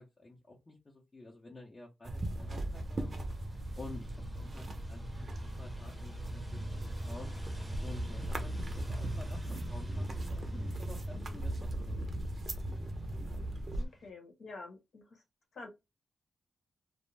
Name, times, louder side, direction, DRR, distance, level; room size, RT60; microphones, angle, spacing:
voice 1, 0.0-3.3 3.8-4.1 4.3-7.3 7.8-11.9, left 2 dB, 25° left, 0.7 m, -51 dB
sound 1, 2.0-13.9, right 1 dB, 40° right, 0.6 m, -38 dB
sound 2, 2.4-14.1, right 1 dB, 5° right, 0.7 m, -47 dB
voice 2, 13.8-15.2 15.5-15.7, left 3 dB, 70° left, 1.0 m, -49 dB
2.5 x 2.0 x 3.2 m
wide cardioid pair, 120°, 0 cm